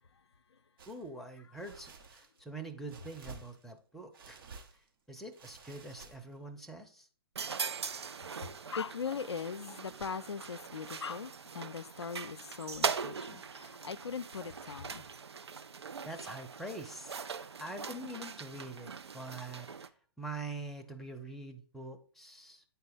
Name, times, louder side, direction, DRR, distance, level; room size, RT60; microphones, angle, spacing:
sound 1, 0.8-1.0 1.6-2.4 2.9-3.8 4.1-4.9 5.3-6.4, right 4 dB, 55° right, 1.1 m, -52 dB
voice 1, 0.9-4.4 5.1-7.1 16.0-17.2 17.6-19.9 20.2-22.6, right 2 dB, ahead, 0.7 m, -44 dB
sound 2, 7.3-19.9, right 5 dB, 75° right, 0.5 m, -41 dB
voice 2, 8.7-15.1, left 6 dB, 80° left, 0.4 m, -40 dB
9.3 x 4.1 x 3.9 m
figure-of-eight pair, 115°, 14 cm